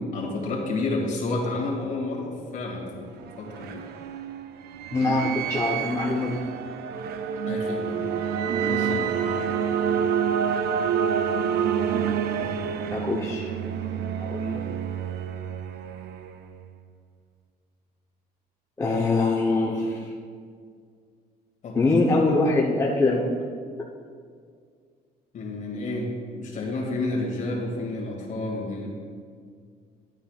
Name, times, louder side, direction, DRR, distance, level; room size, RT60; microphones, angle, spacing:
voice 1, 0.1-3.1 3.4-3.9 7.5-8.0 8.7-9.1 21.6-21.8 25.3-28.9, left 2 dB, 50° left, -1 dB, 2.3 m, -30 dB
sound 1, 2.9-16.7, right 7 dB, 70° right, 0.5 m, -28 dB
voice 2, 4.9-6.4 12.9-14.6 18.8-20.1 21.7-23.3, left 2 dB, 15° left, -4 dB, 0.9 m, -24 dB
12.0 x 8.8 x 2.4 m, 2.1 s
cardioid pair, 110°, 17 cm